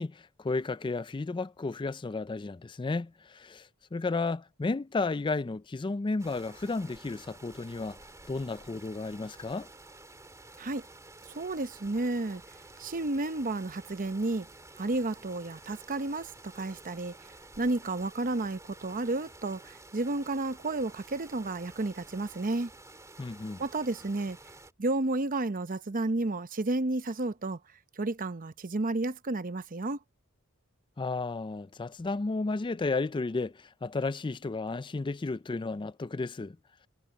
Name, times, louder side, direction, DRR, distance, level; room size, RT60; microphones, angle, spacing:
voice 1, 0.0-8.0 8.3-9.7 23.2-23.6 31.0-36.6, left 3 dB, 20° left, 0.4 m, -33 dB
sound 1, 6.2-24.7, right 2 dB, 15° right, 3.0 m, -51 dB
voice 2, 11.3-12.4 12.8-14.5 14.8-17.2 17.6-22.7 23.6-24.4 24.8-27.6 28.0-30.0, right 2 dB, 40° right, 0.8 m, -31 dB
head